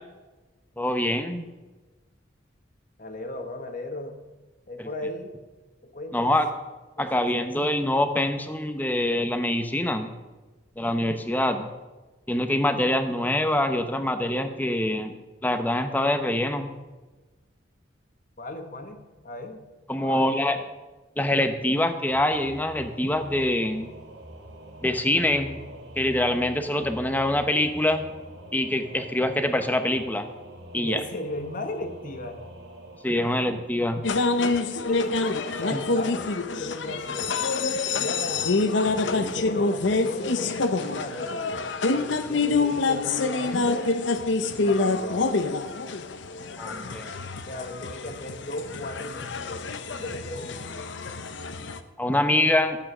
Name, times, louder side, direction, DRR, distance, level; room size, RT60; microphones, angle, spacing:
voice 1, 0.8-1.4 4.8-4.9 6.1-6.5 7.0-10.1 10.8-11.7 12.3-15.2 15.4-16.7 19.9-20.6 21.2-23.9 24.8-25.6 26.0-28.0 28.5-30.3 30.7-31.0 33.0-34.0 35.7-35.8 46.6-47.1 52.0-52.8, left 1 dB, 10° left, 8 dB, 0.9 m, -25 dB
voice 2, 3.0-4.2 4.7-5.3 5.8-6.3 7.0-7.1 7.4-7.5 18.4-19.6 20.0-20.6 30.8-32.4 34.7-35.3 35.6-37.5 37.9-44.0 44.4-45.4 47.5-50.9, left 1 dB, 45° left, 6 dB, 1.4 m, -36 dB
Singing / Musical instrument, 22.1-34.6, right 1 dB, 70° right, 2.6 m, -45 dB
sound 1, 34.0-51.8, left 3 dB, 75° left, 0.8 m, -27 dB
13.0 x 8.8 x 6.2 m, 1.2 s
head